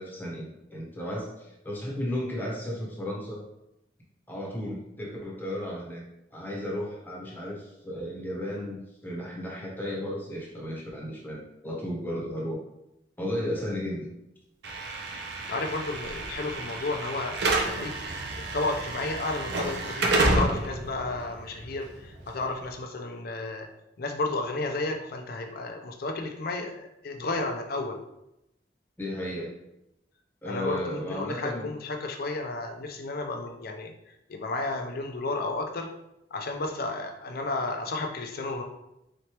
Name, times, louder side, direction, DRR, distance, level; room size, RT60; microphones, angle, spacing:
voice 1, 0.0-3.4 4.3-6.0 6.3-12.6 13.2-14.1 29.0-29.5 30.4-31.7, left 1 dB, 10° left, -3 dB, 1.0 m, -34 dB
Slam / Alarm, 14.6-22.7, right 2 dB, 65° right, 0.7 m, -30 dB
voice 2, 15.5-18.2 18.5-23.7 24.0-28.0 30.5-35.9 36.3-38.6, left 2 dB, 55° left, 4 dB, 0.5 m, -32 dB
4.0 x 3.2 x 3.0 m, 0.85 s
head